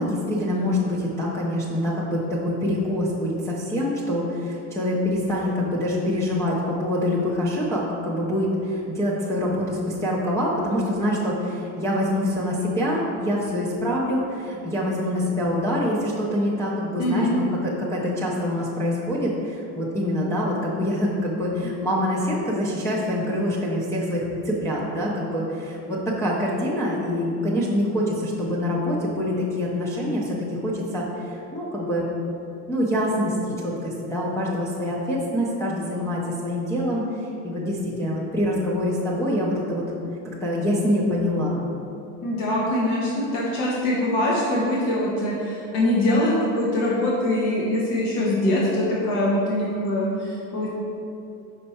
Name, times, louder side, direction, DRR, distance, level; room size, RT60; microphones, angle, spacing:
voice 1, 0.0-32.0 32.7-39.9 40.4-41.6, left 1 dB, 10° left, -7 dB, 0.3 m, -25 dB
voice 2, 17.0-17.4 42.2-50.7, left 1 dB, 75° left, -5 dB, 1.1 m, -23 dB
5.5 x 4.3 x 4.1 m, 2.8 s
cardioid pair, 155°, 38 cm